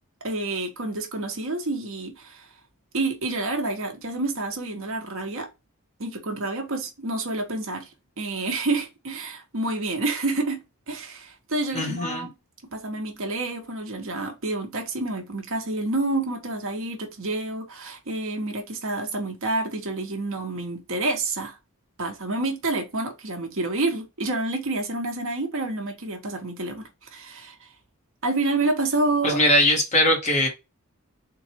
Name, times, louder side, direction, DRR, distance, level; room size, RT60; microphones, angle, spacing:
voice 1, 0.2-2.5 2.9-5.5 6.0-7.9 8.2-10.6 10.9-12.3 12.7-21.6 22.0-27.7 28.2-29.4, right 2 dB, 60° right, 1.1 m, -28 dB
voice 2, 11.7-12.3 29.2-30.5, left 1 dB, 30° left, 1.5 m, -21 dB
3.9 x 2.5 x 4.3 m
head